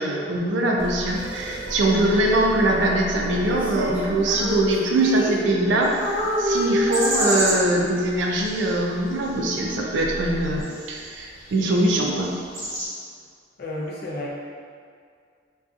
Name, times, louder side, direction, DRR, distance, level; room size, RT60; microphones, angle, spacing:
voice 1, 0.0-12.3, right 1 dB, 75° right, -1 dB, 0.4 m, -22 dB
sound 1, 0.8-10.6, equal, 75° left, 1.2 m, -38 dB
Female singing, 3.5-5.7 6.0-8.1, equal, 10° right, 0.5 m, -27 dB
sound 2, 5.8-12.9, right 1 dB, 90° right, 0.8 m, -33 dB
voice 2, 13.6-14.3, left 1 dB, 55° left, -3 dB, 0.5 m, -31 dB
2.6 x 2.3 x 2.4 m, 2.2 s
head